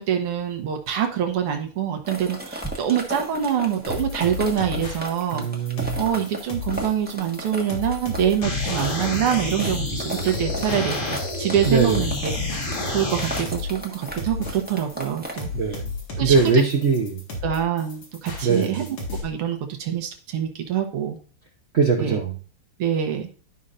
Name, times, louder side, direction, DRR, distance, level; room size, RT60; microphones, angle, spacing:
voice 1, 0.0-5.5 6.0-11.0 11.4-12.3 12.9-15.5 16.2-16.5 17.4-19.0 19.2-21.2 22.0-22.2 22.8-23.3, right 9 dB, 85° right, 5 dB, 2.1 m, -25 dB
sound 1, 2.0-15.8, right 1 dB, 5° right, 0.9 m, -36 dB
sound 2, 3.9-19.2, left 3 dB, 80° left, 2.9 m, -33 dB
voice 2, 5.3-6.0 11.6-12.0 15.5-15.9 16.2-17.2 18.4-18.7 21.7-22.4, right 4 dB, 55° right, 1 dB, 0.7 m, -21 dB
sound 3, 8.4-13.4, left 2 dB, 40° left, 1.8 m, -29 dB
12.0 x 5.6 x 2.5 m, 0.38 s
omnidirectional pair, 2.4 m